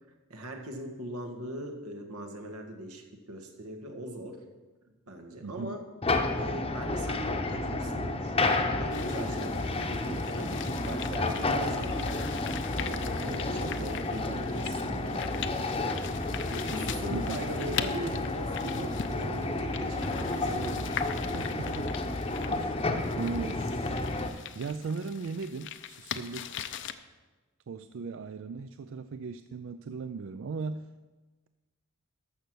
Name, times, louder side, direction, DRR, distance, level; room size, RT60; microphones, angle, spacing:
voice 1, 0.3-4.4 5.0-5.9 6.3-16.2 16.5-21.1, right 1 dB, 85° right, 4 dB, 1.7 m, -40 dB
voice 2, 5.4-5.9 17.1-17.5 21.3-21.9 22.5-22.8 23.2-24.0 24.5-26.6 27.7-30.9, right 4 dB, 60° right, 11 dB, 0.4 m, -37 dB
sound 1, 6.0-24.3, left 2 dB, 25° left, 0.8 m, -31 dB
sound 2, 8.9-26.9, left 9 dB, 55° left, 0.6 m, -41 dB
13.5 x 6.6 x 6.2 m, 1.2 s
head